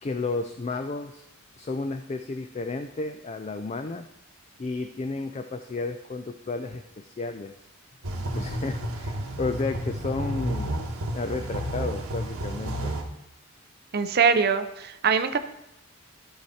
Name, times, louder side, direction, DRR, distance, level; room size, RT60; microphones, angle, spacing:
voice 1, 0.0-1.2 1.6-4.1 4.6-7.5 8.3-10.9 11.1-13.0, left 3 dB, 30° left, 8 dB, 0.4 m, -32 dB
sound 1, 8.0-13.0, right 1 dB, 85° right, 1.4 m, -31 dB
voice 2, 13.9-15.4, right 6 dB, 45° right, 10 dB, 0.6 m, -22 dB
13.5 x 4.7 x 4.3 m, 0.91 s
head